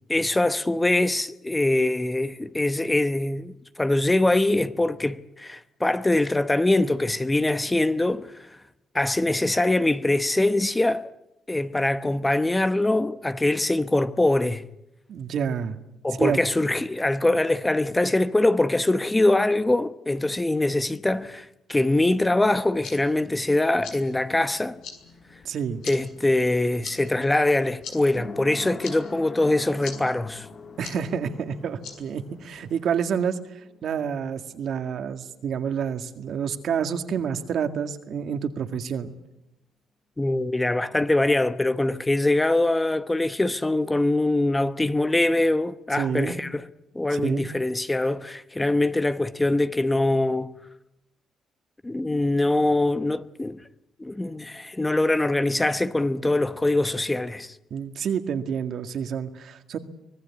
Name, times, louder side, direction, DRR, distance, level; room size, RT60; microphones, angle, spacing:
voice 1, 0.0-8.5 8.9-11.1 11.5-14.7 16.0-24.8 25.8-30.5 40.2-46.6 46.9-50.5 51.8-53.6 54.0-57.5, left 2 dB, 15° left, 0.9 m, -23 dB
voice 2, 15.1-15.8 16.2-16.4 25.4-25.8 30.8-33.4 33.8-39.1 45.9-46.4 47.1-47.5 57.7-59.8, right 7 dB, 65° right, 1.9 m, -28 dB
sound 1, 22.5-32.7, left 6 dB, 85° left, 4.8 m, -45 dB
sound 2, 25.1-36.6 36.8-36.9, left 4 dB, 40° left, 1.9 m, -45 dB
24.5 x 19.0 x 8.5 m
cardioid pair, 90°, 0 cm